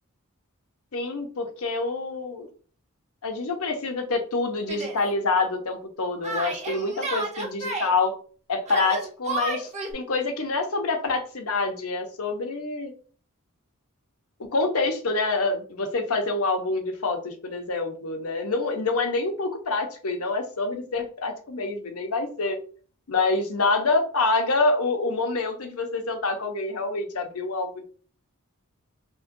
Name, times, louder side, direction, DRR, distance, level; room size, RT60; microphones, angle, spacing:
voice 1, 0.9-2.5 3.2-8.1 8.5-12.9 14.5-22.6 23.1-27.8, left 3 dB, 80° left, 5 dB, 0.8 m, -26 dB
Yell, 4.7-5.0 6.2-7.9 8.7-9.9, right 2 dB, 30° right, 0.8 m, -31 dB
5.3 x 2.2 x 2.6 m, 0.42 s
head